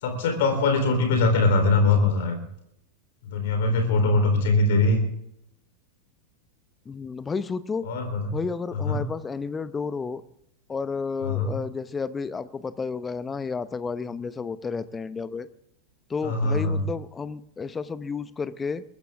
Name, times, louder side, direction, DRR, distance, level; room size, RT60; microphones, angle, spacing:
voice 1, 0.0-2.4 3.2-5.0 7.9-8.4 8.7-9.0 11.2-11.6 16.2-16.8, left 3 dB, 55° left, 5 dB, 3.8 m, -22 dB
voice 2, 3.7-4.0 6.9-7.9 8.3-10.2 10.7-15.5 16.1-18.8, left 5 dB, 15° left, 16 dB, 0.8 m, -31 dB
22.0 x 14.5 x 3.6 m, 0.75 s
figure-of-eight pair, 90°, 0 cm